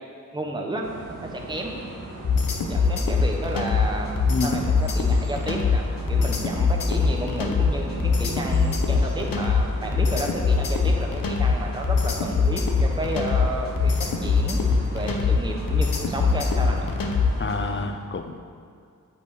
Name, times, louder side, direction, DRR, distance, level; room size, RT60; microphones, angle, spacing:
voice 1, 0.3-0.9 1.2-1.8 2.7-14.6 14.9-16.9, right 1 dB, 15° right, 1 dB, 1.0 m, -32 dB
sound 1, 0.8-17.9, right 2 dB, 85° right, 2.0 m, -38 dB
sound 2, 2.2-17.5, left 5 dB, 80° left, 1.0 m, -23 dB
voice 2, 4.3-4.7 17.4-18.4, left 3 dB, 35° left, 7 dB, 0.7 m, -28 dB
8.5 x 5.5 x 7.1 m, 2.4 s
wide cardioid pair, 100°, 33 cm